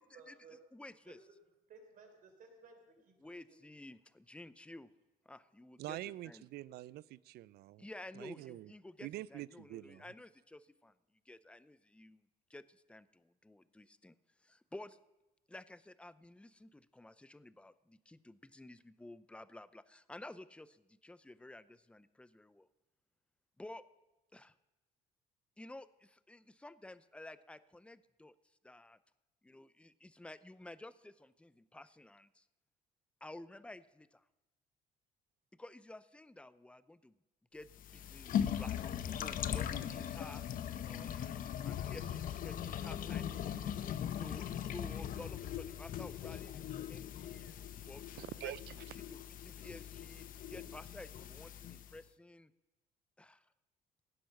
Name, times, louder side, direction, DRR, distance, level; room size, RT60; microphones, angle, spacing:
voice 1, 0.1-0.6 1.1-1.3 1.7-3.6, right 4 dB, 55° right, 4 dB, 3.9 m, -58 dB
voice 2, 0.7-1.2 3.2-4.9 5.3-6.0 6.2-6.4 7.8-10.9 11.3-12.2 12.5-14.2 14.4-15.0 15.5-22.7 23.6-23.8 24.3-24.5 25.6-28.3 28.6-29.0 29.4-32.4 33.2-34.2 35.6-37.1 37.5-40.5 40.8-43.8 44.2-47.5 47.9-48.1 48.4-48.7 49.1-52.5 53.2-53.5, left 2 dB, 5° left, 15 dB, 0.6 m, -52 dB
voice 3, 5.8-7.9 8.2-8.7 9.0-10.0 48.2-48.7, right 15 dB, 70° right, 20 dB, 0.4 m, -45 dB
sound 1, 37.7-52.0, left 9 dB, 55° left, 0.8 m, -40 dB
17.0 x 10.0 x 5.9 m, 1.0 s
cardioid pair, 110°, 17 cm